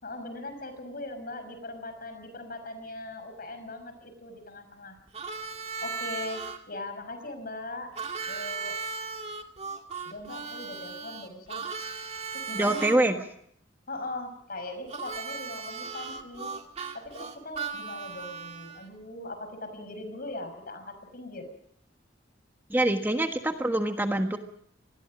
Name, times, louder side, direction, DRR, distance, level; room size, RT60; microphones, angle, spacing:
voice 1, 0.0-5.0 5.8-7.9 8.3-8.8 10.0-11.7 12.3-13.2 13.9-16.5 16.9-21.5, left 2 dB, 55° left, 9 dB, 5.8 m, -40 dB
Harmonica, 5.1-6.6 8.0-13.0 14.9-18.8, right 4 dB, 35° right, 2.1 m, -37 dB
voice 2, 12.5-13.2 22.7-24.4, right 1 dB, 10° right, 5 dB, 1.4 m, -25 dB
26.0 x 21.0 x 5.1 m, 0.68 s
head